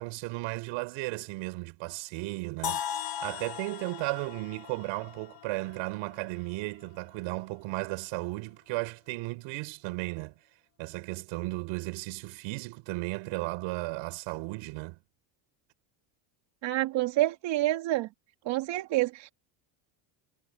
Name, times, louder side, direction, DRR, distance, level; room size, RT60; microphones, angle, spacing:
voice 1, 0.0-2.8 3.2-10.4 10.8-15.0, right 23 dB, 80° right, 5.3 m, -35 dB
sound 1, 2.6-6.5, left 9 dB, 50° left, 2.4 m, -38 dB
voice 2, 16.6-18.1 18.5-19.3, right 16 dB, 60° right, 2.4 m, -28 dB
cardioid pair, 155°, 48 cm